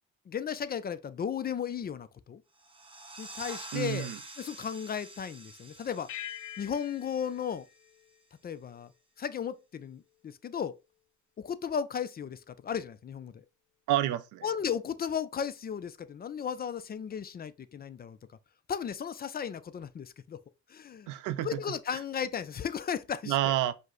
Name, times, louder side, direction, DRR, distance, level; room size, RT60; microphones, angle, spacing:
voice 1, 0.3-2.4 3.2-4.1 4.4-6.1 6.6-7.7 8.4-8.9 9.2-10.8 11.4-13.4 14.4-18.2 18.7-20.4 20.7-21.1 21.4-23.4, left 7 dB, 30° left, 0.4 m, -35 dB
sound 1, 2.5-7.9, right 2 dB, 15° right, 0.8 m, -47 dB
voice 2, 3.7-4.2 13.9-14.5 21.1-21.6 21.9-22.0 23.3-23.7, right 13 dB, 90° right, 0.5 m, -29 dB
sound 2, 6.1-8.9, left 12 dB, 75° left, 0.6 m, -45 dB
5.1 x 2.1 x 3.7 m
cardioid pair, 90°, 30 cm